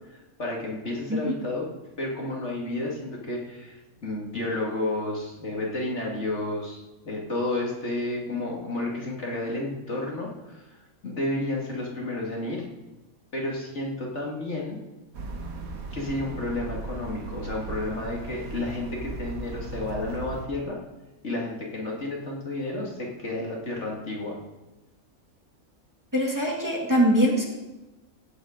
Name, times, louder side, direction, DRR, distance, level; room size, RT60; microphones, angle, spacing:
voice 1, 0.1-1.7 2.0-12.6 13.3-14.8 15.9-20.8 21.2-24.4, left 2 dB, 55° left, -2 dB, 2.5 m, -31 dB
sound 1, 15.1-20.5, right 3 dB, 85° right, 1.8 m, -37 dB
voice 2, 26.1-27.5, equal, 15° right, -2 dB, 2.2 m, -22 dB
16.0 x 8.9 x 5.1 m, 1.1 s
omnidirectional pair, 1.5 m